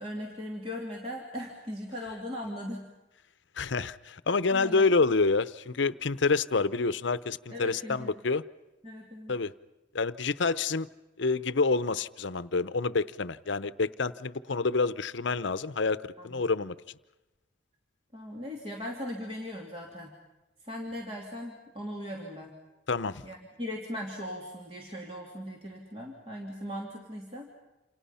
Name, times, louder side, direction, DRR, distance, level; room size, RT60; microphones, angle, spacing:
voice 1, 0.0-2.9 4.5-4.9 7.5-8.2 8.8-9.3 16.2-16.4 18.1-20.1 20.6-22.5 23.2-27.5, equal, 30° right, -2 dB, 2.9 m, -39 dB
voice 2, 3.6-8.4 9.3-9.5 9.9-10.9 11.2-16.8 22.9-23.2, left 4 dB, 75° left, 15 dB, 0.8 m, -28 dB
28.5 x 28.0 x 5.7 m, 1.0 s
head